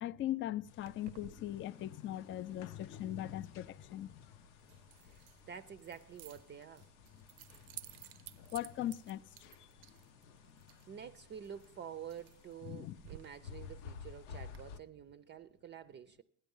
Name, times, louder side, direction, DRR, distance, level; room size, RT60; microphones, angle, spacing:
voice 1, 0.0-4.2 8.5-9.2 12.6-13.0, left 13 dB, 35° left, 0.4 m, -39 dB
sound 1, 0.7-14.8, left 7 dB, 90° left, 0.7 m, -55 dB
Keys jangling, 0.8-14.6, right 13 dB, 85° right, 0.6 m, -57 dB
voice 2, 5.0-6.9 10.9-16.2, right 8 dB, 30° right, 0.5 m, -49 dB
16.5 x 10.5 x 5.4 m
supercardioid pair, 100°, 35 cm